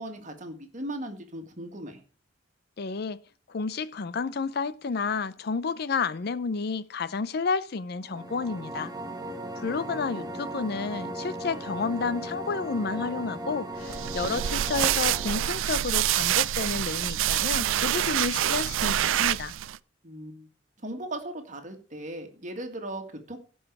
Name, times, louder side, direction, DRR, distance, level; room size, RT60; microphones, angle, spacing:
voice 1, 0.0-2.0 9.7-10.3 20.0-20.5 20.8-23.4, right 1 dB, 40° right, 1.9 m, -38 dB
voice 2, 2.8-3.2 3.5-8.9 9.6-19.5, left 4 dB, 55° left, 0.5 m, -31 dB
sound 1, 8.0-15.8, right 1 dB, 20° right, 1.1 m, -37 dB
sound 2, 13.8-19.8, right 12 dB, 90° right, 0.4 m, -26 dB
16.0 x 5.5 x 4.7 m
head